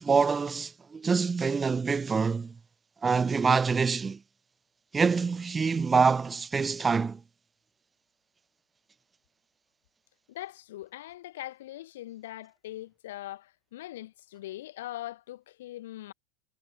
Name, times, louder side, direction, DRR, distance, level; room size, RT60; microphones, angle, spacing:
voice 1, 0.0-2.5 3.0-4.2 4.9-7.2, right 5 dB, 20° right, 5.1 m, -25 dB
voice 2, 10.3-16.1, left 14 dB, 75° left, 7.2 m, -41 dB
hypercardioid pair, 95°, 0 cm